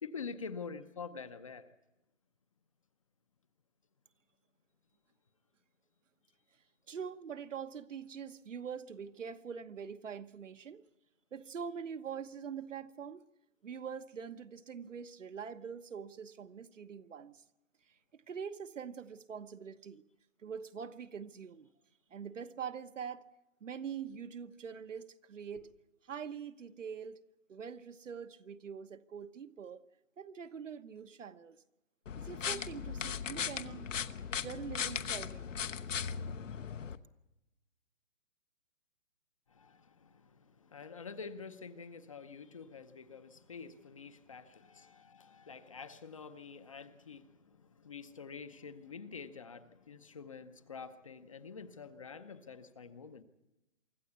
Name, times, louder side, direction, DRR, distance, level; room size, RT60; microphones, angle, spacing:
voice 1, 0.0-1.7 25.5-25.6 39.5-53.2, left 5 dB, 25° left, 0.7 m, -47 dB
voice 2, 6.9-10.8 11.3-13.2 13.6-17.4 18.1-20.0 20.4-21.7 22.1-23.2 23.6-25.7 26.0-27.2 27.5-29.8 30.2-31.6 32.2-33.9 34.4-35.5, right 7 dB, 70° right, 1.2 m, -44 dB
sound 1, 32.1-37.0, left 7 dB, 75° left, 1.1 m, -38 dB
24.5 x 13.5 x 8.2 m
hypercardioid pair, 165°, 38 cm